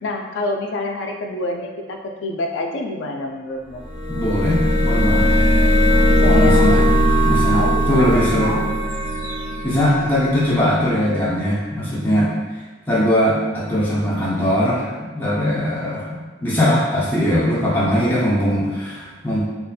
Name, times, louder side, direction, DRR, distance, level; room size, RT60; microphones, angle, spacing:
voice 1, 0.0-3.8 6.1-6.6 7.3-8.7 15.3-15.6, left 2 dB, 70° left, 2 dB, 0.3 m, -27 dB
sound 1, 3.8-10.5, equal, 40° right, 1.0 m, -18 dB
voice 2, 4.1-5.4 6.2-6.8 7.2-8.6 9.6-12.3 12.9-19.4, equal, 10° left, -8 dB, 0.5 m, -20 dB
2.6 x 2.4 x 2.2 m, 1.3 s
head